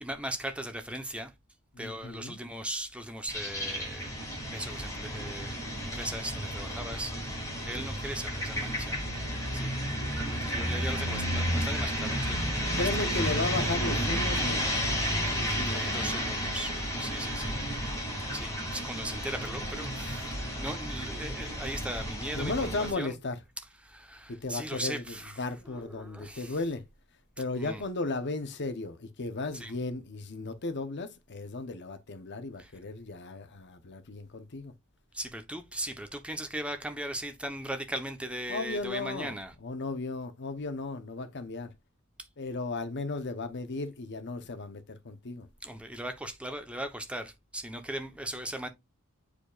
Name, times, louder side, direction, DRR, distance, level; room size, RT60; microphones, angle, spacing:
voice 1, 0.0-1.3 1.8-4.1 4.5-7.4 7.7-9.0 9.5-9.7 10.2-13.4 15.7-17.5 18.3-23.2 23.8-26.6 27.5-27.8 29.5-29.7 32.6-32.7 35.1-39.5 45.6-48.7, right 1 dB, 5° right, 0.9 m, -38 dB
voice 2, 1.7-2.4 9.8-10.1 12.7-14.7 15.3-15.9 22.3-23.4 24.3-26.8 27.4-34.7 38.5-39.3 39.6-41.7 42.4-45.5, left 3 dB, 50° left, 0.9 m, -35 dB
sound 1, 3.3-22.9, equal, 15° left, 2.6 m, -32 dB
8.5 x 5.0 x 2.4 m
head